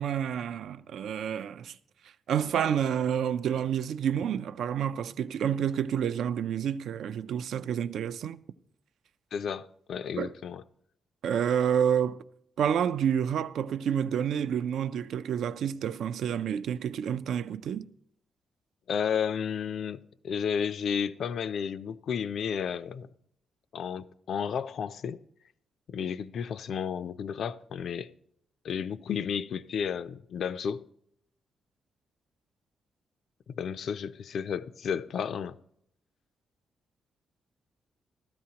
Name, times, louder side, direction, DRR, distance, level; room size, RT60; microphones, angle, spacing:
voice 1, 0.0-1.8 2.3-8.4 10.2-10.3 11.2-12.2 12.6-17.9, right 8 dB, 75° right, 0.3 m, -29 dB
voice 2, 9.3-10.6 18.9-23.1 23.7-25.2 25.9-28.1 28.6-30.8 33.5-35.6, left 7 dB, 60° left, 0.3 m, -32 dB
15.0 x 12.5 x 2.9 m
wide cardioid pair, 150°, 0 cm